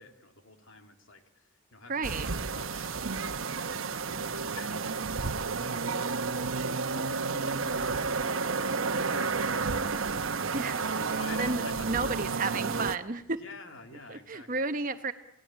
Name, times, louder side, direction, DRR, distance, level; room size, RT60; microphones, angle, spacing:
voice 1, 0.0-9.3 9.8-9.9 10.6-12.3 13.3-14.7, left 3 dB, 75° left, 5 dB, 2.9 m, -49 dB
voice 2, 1.9-2.3 10.5-10.8 11.4-11.6 11.9-13.2 14.1-15.1, right 3 dB, 40° right, 8 dB, 0.9 m, -32 dB
sound 1, 2.0-13.0, right 4 dB, 80° right, 1.0 m, -31 dB
28.0 x 18.0 x 8.7 m, 0.77 s
head